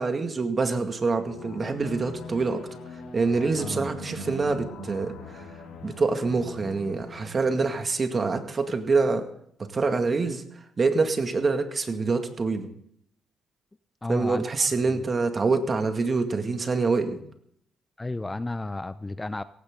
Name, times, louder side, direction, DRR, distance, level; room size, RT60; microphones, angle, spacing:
voice 1, 0.0-2.6 3.1-5.4 5.8-9.3 9.7-10.4 10.8-12.7 14.1-17.2, right 4 dB, 35° right, 6 dB, 2.1 m, -25 dB
sound 1, 1.2-8.6, left 1 dB, 85° left, 4.8 m, -41 dB
voice 2, 14.0-15.0 18.0-19.4, left 2 dB, 15° left, 13 dB, 0.6 m, -33 dB
17.5 x 15.5 x 3.8 m, 0.71 s
cardioid pair, 90°, 0 cm